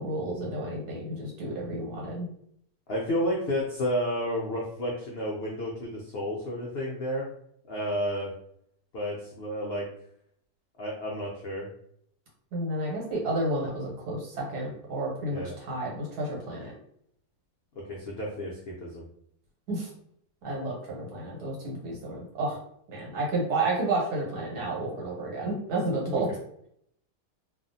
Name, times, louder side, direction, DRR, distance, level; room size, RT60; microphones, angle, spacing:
voice 1, 0.0-2.3 12.5-16.7 19.7-19.9 20.4-22.6 22.9-26.3, right 2 dB, 80° right, -2 dB, 1.5 m, -31 dB
voice 2, 2.9-7.3 7.7-8.3 8.9-9.8 10.8-11.7 15.3-15.5 17.9-19.0 26.1-26.2, equal, 75° left, -3 dB, 0.5 m, -31 dB
2.6 x 2.4 x 2.6 m, 0.68 s
omnidirectional pair, 1.7 m